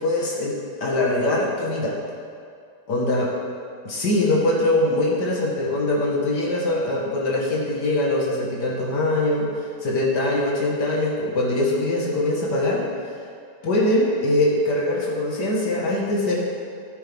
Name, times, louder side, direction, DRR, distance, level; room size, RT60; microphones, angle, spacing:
voice 1, 0.0-2.0 2.9-3.3 3.9-9.5 9.8-12.9 13.6-16.4, left 1 dB, 80° left, -3 dB, 2.3 m, -22 dB
15.5 x 8.9 x 3.6 m, 2.4 s
omnidirectional pair, 1.7 m